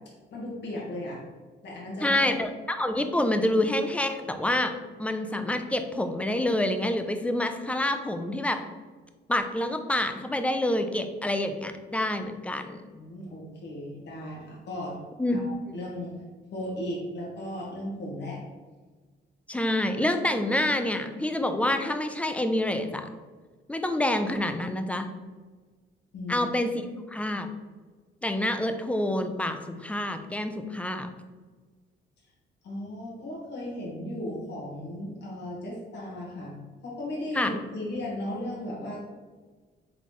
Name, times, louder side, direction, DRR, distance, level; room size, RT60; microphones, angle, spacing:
voice 1, 0.3-1.2 1.6-2.4 12.9-15.0 15.3-16.2 16.5-18.4 26.1-26.5 32.6-36.5 36.8-39.0, left 1 dB, 60° left, -4 dB, 1.5 m, -36 dB
voice 2, 2.0-4.7 5.0-8.6 9.3-12.8 15.2-15.4 15.7-15.8 19.5-23.1 23.7-25.1 26.3-26.7 27.1-27.5 28.2-31.1 37.3-37.5, left 1 dB, 5° left, 7 dB, 0.4 m, -27 dB
4.0 x 3.8 x 3.1 m, 1.4 s
cardioid pair, 90°, 20 cm